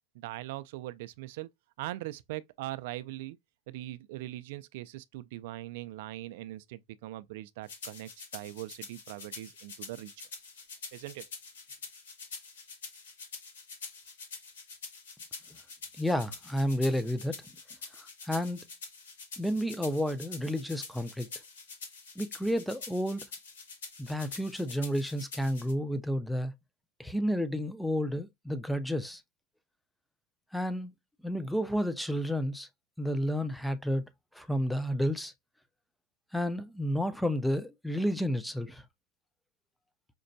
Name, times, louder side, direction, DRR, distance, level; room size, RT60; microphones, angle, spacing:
voice 1, 0.2-1.5 1.8-3.4 3.7-10.1 10.9-11.2, right 16 dB, 70° right, 0.3 m, -41 dB
sound 1, 7.7-25.7, left 4 dB, 90° left, 1.4 m, -46 dB
voice 2, 16.0-17.4 18.0-18.7 19.4-21.3 22.2-23.2 24.0-26.5 27.0-29.2 30.5-30.9 31.2-32.7 33.0-34.0 34.3-35.3 36.3-38.8, equal, ahead, 0.4 m, -31 dB
5.1 x 2.1 x 2.6 m
hypercardioid pair, 110°, 0 cm